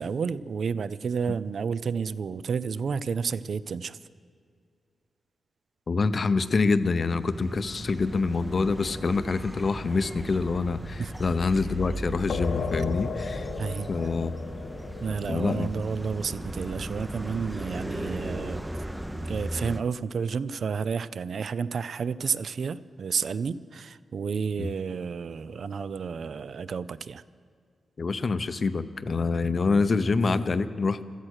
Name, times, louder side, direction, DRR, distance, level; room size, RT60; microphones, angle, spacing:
voice 1, 0.0-4.0 11.0-11.1 13.6-13.9 15.0-18.6 19.2-27.2, right 6 dB, 60° right, 17 dB, 0.5 m, -31 dB
voice 2, 5.9-13.5 13.9-14.3 15.3-15.7 24.6-24.7 28.0-31.0, left 4 dB, 40° left, 13 dB, 0.7 m, -26 dB
sound 1, 7.1-19.8, right 1 dB, 10° right, 0.6 m, -37 dB
sound 2, 12.3-17.6, left 5 dB, 85° left, 1.2 m, -35 dB
16.5 x 13.5 x 6.5 m, 2.2 s
wide cardioid pair, 145°, 0 cm